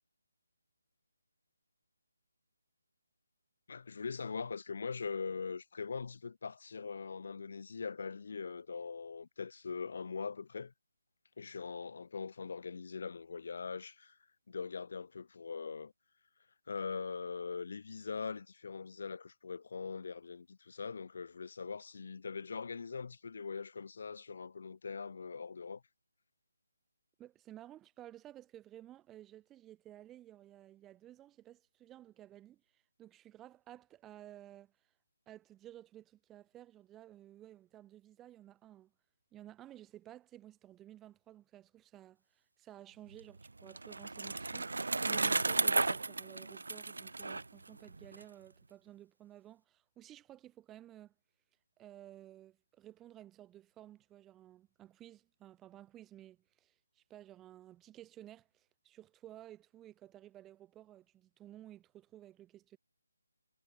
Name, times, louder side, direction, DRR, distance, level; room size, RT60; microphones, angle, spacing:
voice 1, 3.7-10.7 11.4-14.2 14.5-15.9 16.7-25.8, left 5 dB, 55° left, 4.9 m, -42 dB
voice 2, 27.2-34.7 35.3-38.9 39.3-51.1 51.8-62.8, right 13 dB, 10° right, 4.4 m, -55 dB
Bicycle, 43.1-48.2, right 3 dB, 75° right, 1.3 m, -34 dB
figure-of-eight pair, 160°, 0 cm